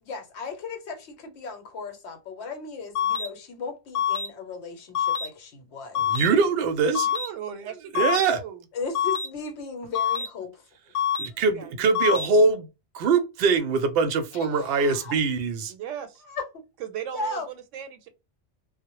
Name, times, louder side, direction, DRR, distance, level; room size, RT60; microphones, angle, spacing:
voice 1, 0.0-6.2 8.7-10.5 14.5-15.1 16.2-16.5 17.1-17.5, left 4 dB, 70° left, 1.0 m, -36 dB
sound 1, 3.0-3.3 4.0-4.3 5.0-5.3 6.0-6.3 7.0-7.3 8.0-8.3 9.0-9.3 10.0-10.3 11.0-11.3 12.0-12.3, left 8 dB, 85° left, 0.9 m, -25 dB
voice 2, 6.0-7.1 7.9-8.4 11.2-12.7 12.9-15.7, right 4 dB, 65° right, 0.7 m, -23 dB
voice 3, 7.1-8.6 11.4-12.2 15.7-16.2 16.8-18.1, right 9 dB, 85° right, 0.9 m, -38 dB
2.1 x 2.0 x 2.9 m
omnidirectional pair, 1.2 m